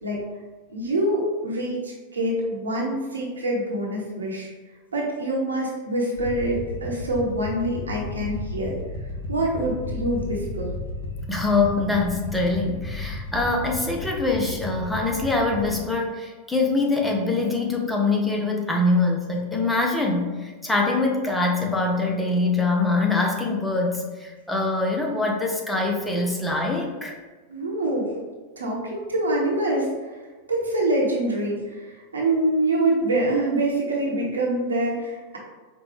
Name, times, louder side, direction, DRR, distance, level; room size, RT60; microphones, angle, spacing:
voice 1, 0.7-4.5 4.9-8.8 9.3-10.7 27.5-28.2 28.6-30.1 30.5-35.4, right 1 dB, 75° right, -2 dB, 0.9 m, -25 dB
sound 1, 6.2-15.8, left 2 dB, 60° left, 0.6 m, -34 dB
voice 2, 11.3-27.1 27.8-27.9, left 3 dB, 5° left, -1 dB, 0.6 m, -24 dB
5.0 x 2.2 x 3.2 m, 1.3 s
figure-of-eight pair, 90°, 0 cm